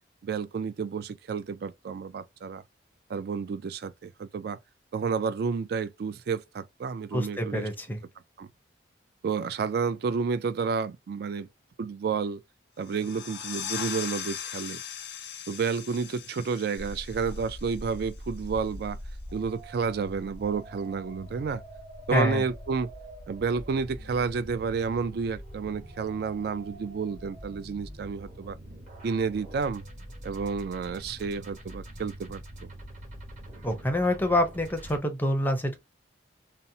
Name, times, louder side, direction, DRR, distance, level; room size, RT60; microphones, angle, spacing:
voice 1, 0.2-2.6 3.1-4.6 4.9-7.7 8.4-8.5 9.2-11.5 11.8-12.4 12.8-14.8 15.5-19.0 19.3-21.6 22.1-22.9 23.3-28.6 29.0-29.8 30.2-32.7, right 5 dB, 55° right, 0.3 m, -30 dB
voice 2, 7.1-8.0 22.1-22.4 33.6-35.8, left 1 dB, 10° left, 0.5 m, -26 dB
sound 1, 12.8-18.2, left 8 dB, 60° left, 0.5 m, -39 dB
sound 2, 16.8-35.0, equal, 40° right, 1.0 m, -43 dB
2.7 x 2.0 x 2.6 m
head